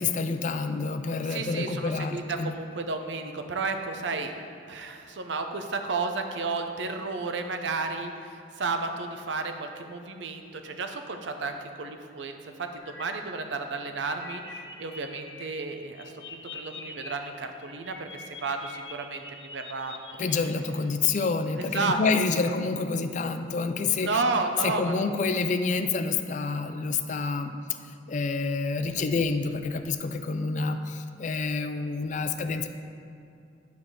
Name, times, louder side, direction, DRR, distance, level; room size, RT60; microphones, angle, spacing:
voice 1, 0.0-2.6 20.2-24.2 24.6-27.5 28.1-32.7, left 4 dB, 45° left, 8 dB, 0.4 m, -28 dB
voice 2, 1.3-19.9 21.6-22.0 22.3-22.4 24.0-25.1, right 3 dB, 90° right, 6 dB, 0.7 m, -32 dB
sound 1, 12.8-13.2 13.6-15.4 15.7-17.1 17.4-20.4, left 3 dB, 85° left, 1.0 m, -44 dB
9.9 x 3.5 x 6.2 m, 2.5 s
head